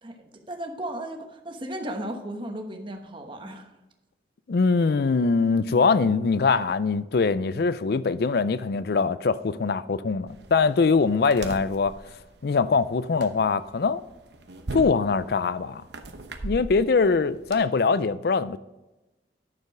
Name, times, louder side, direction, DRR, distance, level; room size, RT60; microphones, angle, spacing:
voice 1, 0.0-3.7, right 1 dB, 30° right, 1.1 m, -35 dB
voice 2, 4.5-12.0 12.4-14.0 14.7-15.8 16.4-18.6, left 4 dB, 60° left, 0.4 m, -22 dB
sound 1, 10.3-17.6, right 2 dB, 70° right, 0.9 m, -40 dB
9.7 x 6.8 x 4.8 m
head